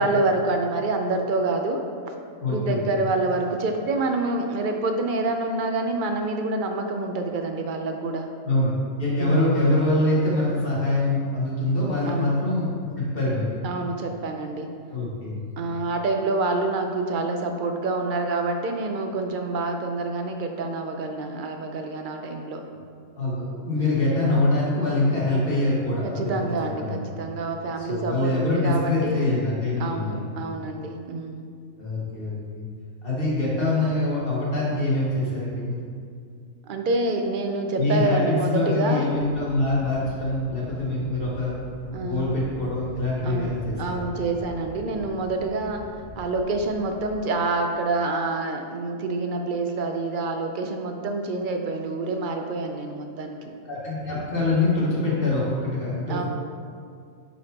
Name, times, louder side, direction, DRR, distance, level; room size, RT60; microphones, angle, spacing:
voice 1, 0.0-2.1 2.5-8.3 9.2-9.5 12.1-12.4 13.6-14.7 15.6-22.6 23.8-24.2 26.0-29.3 29.8-31.5 36.6-39.1 41.9-42.3 43.2-45.9 46.2-53.4 56.1-56.2, right 2 dB, 65° right, 4 dB, 0.5 m, -27 dB
voice 2, 2.4-2.8 8.4-13.5 14.9-15.4 23.2-26.5 26.8-27.0 27.9-30.3 31.8-32.7 33.0-35.8 37.8-41.5 42.0-44.0 53.7-56.3, left 2 dB, 45° left, -7 dB, 1.9 m, -24 dB
Thunder, 39.1-47.2, equal, 75° left, 2.2 m, -43 dB
9.4 x 4.2 x 2.9 m, 2.2 s
omnidirectional pair, 1.4 m